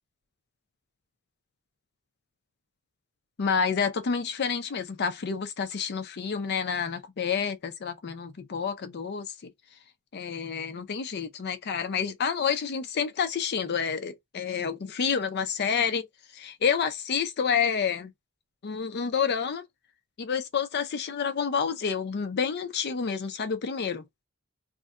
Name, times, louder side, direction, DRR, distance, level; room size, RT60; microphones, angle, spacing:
voice 1, 3.4-9.3 10.1-16.1 16.3-18.1 18.6-19.6 20.2-24.0, left 6 dB, 50° left, 0.4 m, -29 dB
2.5 x 2.1 x 3.6 m
head